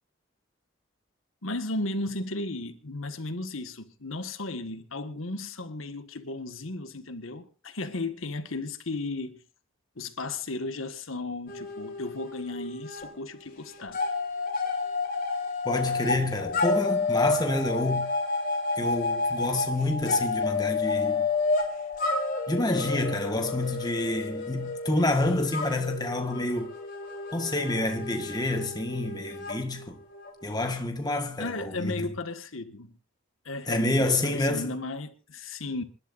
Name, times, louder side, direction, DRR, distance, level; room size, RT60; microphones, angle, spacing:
voice 1, 1.4-9.4 9.9-14.0 31.4-32.9 33.4-35.8, left 2 dB, 85° left, 1.7 m, -35 dB
sound 1, 11.5-13.1 13.4-30.5, left 3 dB, 45° left, 3.6 m, -30 dB
voice 2, 15.6-18.1 18.8-21.3 22.5-26.7 27.3-30.0 30.4-32.1 33.7-34.8, left 2 dB, 20° left, 1.6 m, -28 dB
27.5 x 12.0 x 2.6 m
head